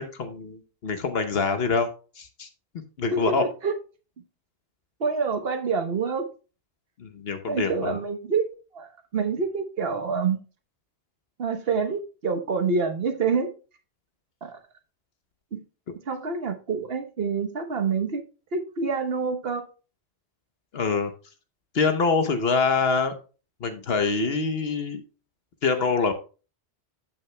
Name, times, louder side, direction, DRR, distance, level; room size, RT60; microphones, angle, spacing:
voice 1, 0.0-1.9 2.2-2.5 3.0-3.4 7.0-7.9 20.7-21.1 21.7-23.1 23.6-25.0 25.6-26.1, left 4 dB, 70° left, 1.1 m, -25 dB
voice 2, 5.0-6.2 7.5-10.4 11.4-13.5 14.4-14.6 15.5-15.6 16.1-18.2 18.5-19.7, right 5 dB, 65° right, 1.3 m, -27 dB
14.0 x 6.0 x 2.2 m
omnidirectional pair, 1.1 m